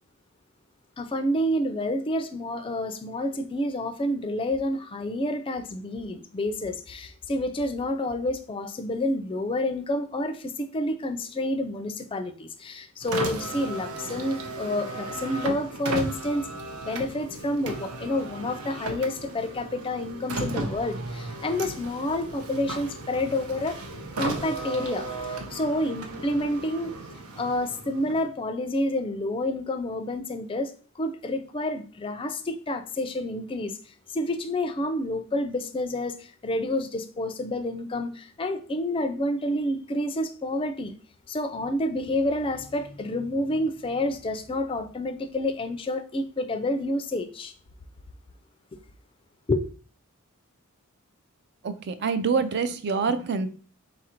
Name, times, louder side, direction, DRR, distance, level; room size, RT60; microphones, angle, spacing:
voice 1, 1.0-16.5 16.8-23.8 24.2-25.1 25.5-26.9 27.4-33.8 34.1-40.9 41.3-47.5 49.5-49.7, left 1 dB, 25° left, 0.4 m, -29 dB
Car, 13.0-28.4, right 2 dB, 85° right, 0.7 m, -35 dB
voice 2, 51.6-53.5, right 5 dB, 50° right, 0.4 m, -26 dB
3.9 x 2.5 x 4.3 m
head